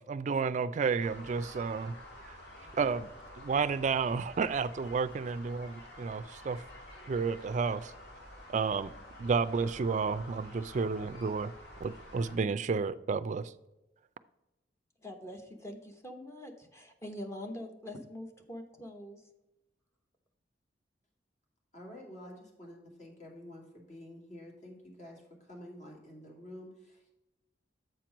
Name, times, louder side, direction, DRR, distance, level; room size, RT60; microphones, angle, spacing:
voice 1, 0.0-1.9 2.3-2.4 2.8-3.1 3.4-6.6 7.1-7.9 8.5-8.9 9.2-11.5 11.8-13.5, right 5 dB, 45° right, 0.4 m, -31 dB
sound 1, 1.0-12.4, left 1 dB, 70° left, 1.9 m, -50 dB
voice 2, 15.0-19.2, left 1 dB, 15° left, 0.9 m, -44 dB
voice 3, 21.7-27.1, left 1 dB, 45° left, 2.3 m, -49 dB
7.9 x 4.5 x 5.0 m
head